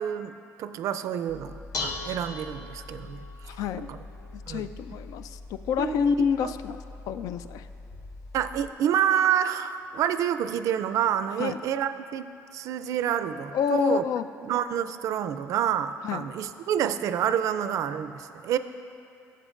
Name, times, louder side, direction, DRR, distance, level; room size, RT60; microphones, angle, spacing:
voice 1, 0.0-3.2 3.9-4.0 4.5-4.7 5.8-6.1 6.4-6.5 8.3-14.0 14.4-18.6, right 9 dB, 65° right, 11 dB, 0.3 m, -28 dB
Dishes pots and pans, 1.3-8.7, left 3 dB, 65° left, 0.8 m, -40 dB
voice 2, 3.4-3.9 4.3-7.7 11.4-11.6 13.5-14.3 16.0-16.3, left 6 dB, 85° left, 11 dB, 0.4 m, -28 dB
17.0 x 7.6 x 2.5 m, 2.6 s
cardioid pair, 165°, 6 cm